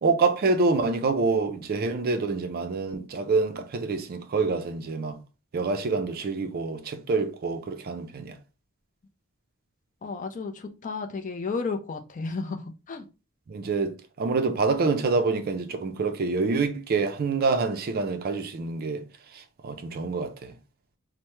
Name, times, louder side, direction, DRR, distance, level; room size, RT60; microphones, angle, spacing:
voice 1, 0.0-5.2 5.5-8.4 13.5-19.0 19.3-20.5, right 4 dB, 45° right, 0.4 m, -26 dB
voice 2, 10.0-13.1, left 4 dB, 40° left, 0.4 m, -33 dB
3.3 x 2.0 x 2.9 m
head